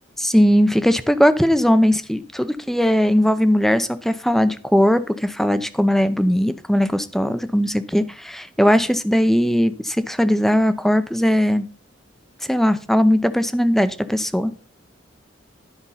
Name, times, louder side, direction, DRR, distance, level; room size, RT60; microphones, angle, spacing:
voice 1, 0.2-11.6 12.5-14.5, equal, ahead, 12 dB, 0.6 m, -19 dB
10.5 x 5.3 x 5.6 m, 0.37 s
head